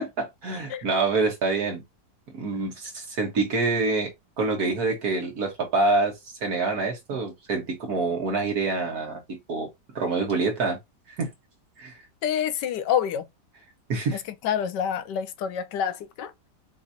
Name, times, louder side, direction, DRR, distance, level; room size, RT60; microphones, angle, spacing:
voice 1, 0.0-1.8 2.3-10.8 11.2-11.3 11.8-12.0 13.9-14.2, right 3 dB, 60° right, 1.7 m, -26 dB
voice 2, 12.2-13.2 14.1-14.2 14.4-16.3, left 8 dB, 85° left, 1.3 m, -27 dB
6.0 x 2.7 x 2.6 m
omnidirectional pair, 1.8 m